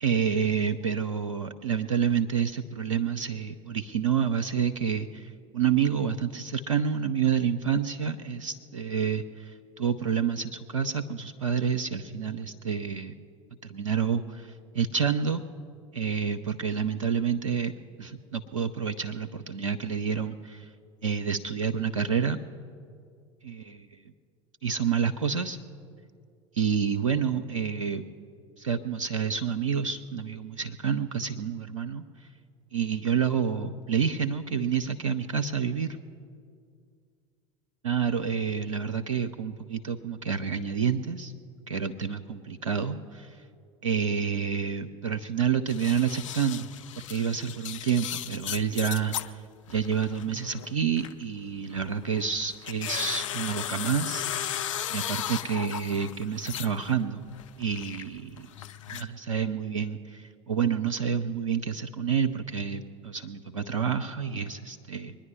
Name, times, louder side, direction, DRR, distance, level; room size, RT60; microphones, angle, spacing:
voice 1, 0.0-13.1 13.6-15.4 15.9-20.6 21.0-22.4 23.4-23.8 24.6-25.6 26.5-28.0 28.6-32.0 32.7-36.0 37.8-41.3 41.7-43.3 43.8-46.7 47.1-49.4 49.7-54.3 54.9-57.3 57.6-58.5 58.9-65.2, right 7 dB, 85° right, 8 dB, 0.5 m, -28 dB
sound 1, 45.7-49.3 49.7-51.2 51.7-57.0 57.2-59.0, left 10 dB, 75° left, 0.5 m, -36 dB
23.0 x 10.0 x 5.5 m, 2.3 s
figure-of-eight pair, 70°, 16 cm